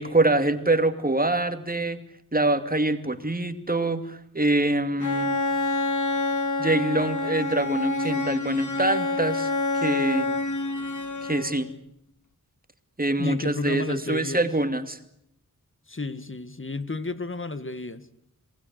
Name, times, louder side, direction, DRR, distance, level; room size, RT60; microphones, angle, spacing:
voice 1, 0.0-2.0 2.3-5.4 6.6-10.3 11.2-11.7 13.0-15.0, right 2 dB, 25° right, 2.6 m, -25 dB
Bowed string instrument, 5.0-11.7, left 2 dB, 60° left, 2.6 m, -27 dB
voice 2, 13.2-14.5 15.9-18.1, left 3 dB, 35° left, 2.1 m, -32 dB
27.5 x 20.0 x 8.3 m
wide cardioid pair, 65°, 34 cm